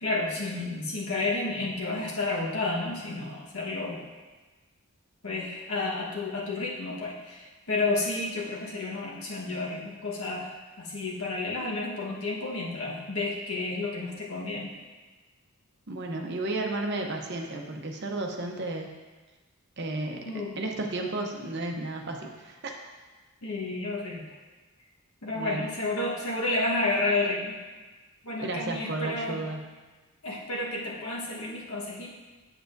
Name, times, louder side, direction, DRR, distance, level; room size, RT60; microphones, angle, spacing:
voice 1, 0.0-4.0 5.2-14.7 20.2-20.5 23.4-24.2 25.2-27.6 28.2-29.4 30.2-32.1, left 2 dB, 75° left, -3 dB, 1.4 m, -31 dB
voice 2, 15.9-18.9 19.8-20.3 20.6-22.8 25.3-25.7 28.4-29.7, right 2 dB, 50° right, 2 dB, 0.8 m, -33 dB
7.9 x 7.5 x 2.6 m, 1.3 s
head